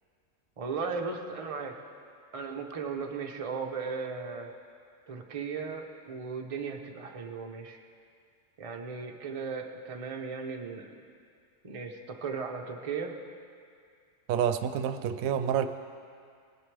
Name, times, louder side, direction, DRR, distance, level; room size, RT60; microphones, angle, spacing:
voice 1, 0.6-1.7 2.3-4.5 5.1-7.8 8.6-11.0 11.6-13.1, right 5 dB, 30° right, 2 dB, 0.7 m, -36 dB
voice 2, 14.3-15.7, right 8 dB, 85° right, 10 dB, 1.0 m, -28 dB
18.5 x 11.0 x 3.3 m, 2.2 s
omnidirectional pair, 1.4 m